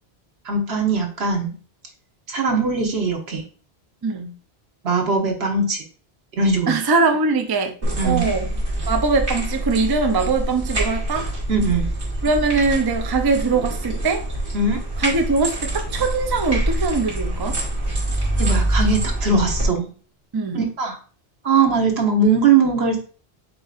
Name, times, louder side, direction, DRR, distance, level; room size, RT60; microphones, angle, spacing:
voice 1, 0.4-1.5 2.3-3.4 4.8-5.8 6.4-6.8 8.0-8.3 11.5-11.9 14.5-14.8 18.4-19.9 20.5-21.0 21.4-23.0, right 4 dB, 75° right, 1.3 m, -20 dB
voice 2, 4.0-4.3 6.7-7.7 8.0-8.5 8.9-11.3 12.2-14.3 15.0-17.6 20.3-20.6, right 4 dB, 30° right, 0.4 m, -21 dB
sound 1, 7.8-19.7, right 1 dB, 55° right, 1.7 m, -25 dB
7.5 x 2.7 x 2.4 m
omnidirectional pair, 1.1 m